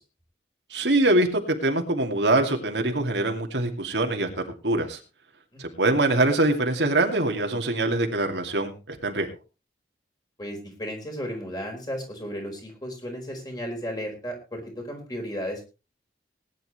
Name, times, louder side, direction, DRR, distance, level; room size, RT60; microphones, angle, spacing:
voice 1, 0.7-4.3 4.6-5.0 5.6-9.3, right 2 dB, 75° right, 4 dB, 2.6 m, -23 dB
voice 2, 10.4-15.6, equal, 20° left, 2 dB, 4.7 m, -34 dB
19.5 x 10.5 x 3.3 m, 0.31 s
head